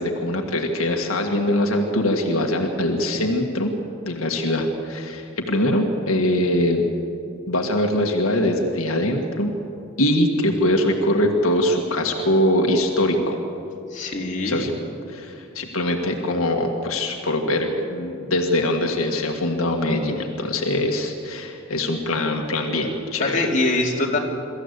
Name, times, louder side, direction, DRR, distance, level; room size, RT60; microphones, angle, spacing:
voice 1, 0.0-3.7 4.0-6.8 7.5-9.5 10.0-13.4 14.4-14.7 15.1-23.4, left 1 dB, 85° left, 2 dB, 1.8 m, -22 dB
voice 2, 13.9-14.6 23.2-24.2, left 2 dB, 40° left, -1 dB, 2.7 m, -23 dB
23.5 x 14.5 x 8.2 m, 2.6 s
head